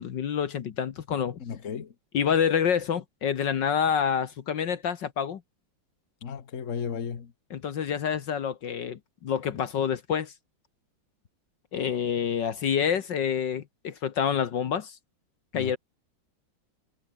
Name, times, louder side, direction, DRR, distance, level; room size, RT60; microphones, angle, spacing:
voice 1, 0.0-1.4 2.1-5.4 7.5-10.3 11.7-15.0 15.5-15.8, left 7 dB, 65° left, 1.9 m, -27 dB
voice 2, 1.4-1.9 6.2-7.3 15.5-15.8, left 7 dB, 40° left, 1.7 m, -34 dB
omnidirectional pair, 2.2 m